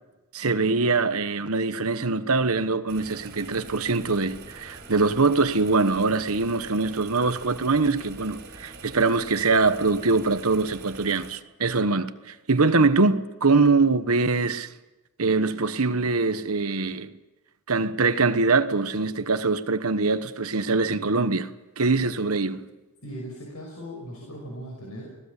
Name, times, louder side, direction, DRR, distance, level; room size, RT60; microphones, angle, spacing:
voice 1, 0.3-14.7 15.2-17.1 17.7-21.5 21.8-22.7, right 3 dB, 70° right, 1.2 m, -23 dB
sound 1, 2.9-11.3, right 3 dB, 50° right, 4.7 m, -44 dB
voice 2, 23.0-25.2, equal, 80° left, 5.9 m, -38 dB
25.0 x 18.0 x 8.4 m
head